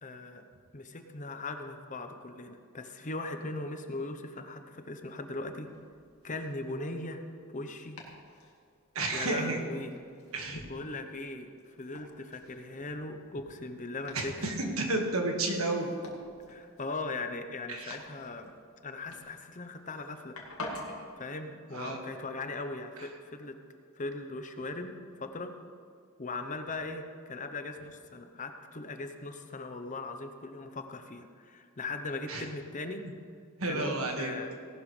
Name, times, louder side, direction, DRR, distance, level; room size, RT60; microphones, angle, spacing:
voice 1, 0.0-0.4 0.7-5.7 6.2-7.2 7.5-8.0 9.1-9.9 10.7-14.5 16.5-18.5 18.8-20.4 21.2-23.5 24.0-25.5 26.2-33.0 33.7-34.5, left 2 dB, 35° left, 6 dB, 0.9 m, -39 dB
Domestic sounds home sounds, 5.5-21.1, left 1 dB, 75° left, 2.1 m, -49 dB
voice 2, 8.9-9.6 10.3-10.6 14.1-15.9 17.7-18.0 21.7-22.0 32.3-32.4 33.6-34.3, right 2 dB, 75° right, 2 dB, 1.8 m, -31 dB
18.0 x 11.5 x 3.3 m, 2.3 s
head